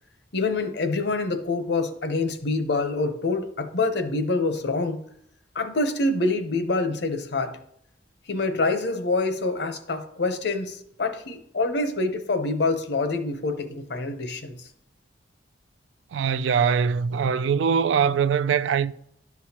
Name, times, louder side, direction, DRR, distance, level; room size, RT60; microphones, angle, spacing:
voice 1, 0.3-5.0 5.5-7.6 8.3-14.5, left 3 dB, 65° left, 0.8 m, -26 dB
voice 2, 16.1-18.9, right 6 dB, 80° right, 0.3 m, -22 dB
11.0 x 6.2 x 2.9 m
head